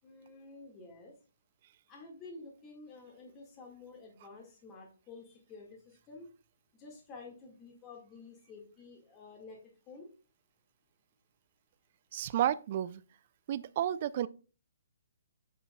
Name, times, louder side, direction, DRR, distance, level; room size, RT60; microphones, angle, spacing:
voice 1, 0.0-1.1 1.9-6.3 6.8-9.6 9.9-10.1, left 3 dB, 25° left, 1.8 m, -51 dB
voice 2, 12.1-13.0 13.5-14.3, right 11 dB, 45° right, 0.4 m, -31 dB
9.9 x 6.3 x 2.3 m
figure-of-eight pair, 135°, 0 cm